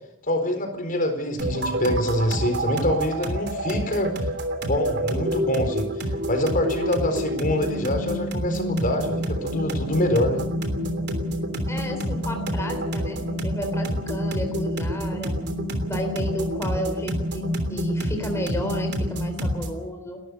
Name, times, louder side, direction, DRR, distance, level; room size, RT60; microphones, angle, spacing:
voice 1, 0.3-4.1 4.6-10.4, left 1 dB, 45° left, 6 dB, 4.4 m, -25 dB
sound 1, 1.4-19.8, equal, 55° right, 3.2 m, -28 dB
voice 2, 11.7-15.3 15.9-20.2, left 1 dB, 15° left, 3 dB, 3.6 m, -32 dB
30.0 x 13.5 x 6.8 m, 0.82 s
head